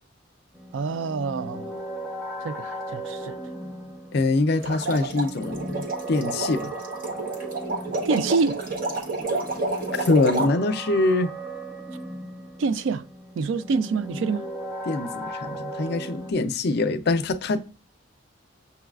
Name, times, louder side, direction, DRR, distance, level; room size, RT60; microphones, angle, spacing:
sound 1, 0.5-16.3, right 1 dB, ahead, 0.5 m, -37 dB
voice 1, 0.7-1.8 2.4-3.4 8.0-8.6 12.6-13.0 13.4-14.5, right 4 dB, 65° right, 0.3 m, -26 dB
voice 2, 4.1-6.7 9.9-11.3 14.9-17.6, left 2 dB, 55° left, 0.4 m, -24 dB
sound 2, 4.6-10.5, right 3 dB, 45° right, 0.8 m, -30 dB
6.7 x 2.3 x 2.3 m
head